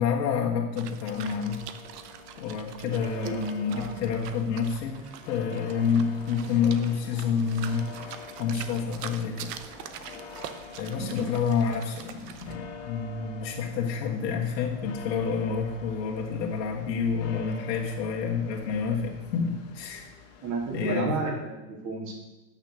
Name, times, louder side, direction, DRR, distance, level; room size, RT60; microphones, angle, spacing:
voice 1, 0.0-1.6 2.4-9.5 10.8-20.1 20.7-21.2, left 6 dB, 90° left, -1 dB, 1.8 m, -28 dB
sound 1, 0.8-12.6, right 10 dB, 70° right, 1.0 m, -44 dB
sound 2, 1.1-20.8, left 5 dB, 70° left, 1.8 m, -46 dB
voice 2, 3.7-4.1 4.4-4.5 10.9-11.2 20.4-22.1, right 3 dB, 35° right, 0 dB, 2.4 m, -33 dB
sound 3, 5.6-10.6, left 2 dB, 5° left, 0.3 m, -50 dB
8.8 x 6.6 x 6.2 m, 1.1 s
supercardioid pair, 155°, 49 cm